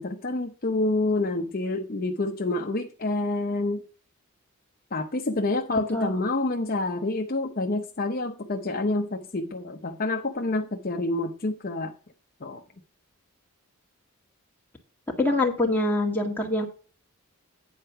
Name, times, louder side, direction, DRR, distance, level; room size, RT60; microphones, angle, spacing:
voice 1, 0.0-3.8 4.9-11.9 12.4-12.6, left 2 dB, 40° left, 0.7 m, -28 dB
voice 2, 5.7-6.1 15.2-16.7, left 2 dB, 10° left, 1.7 m, -25 dB
9.5 x 4.6 x 5.6 m
head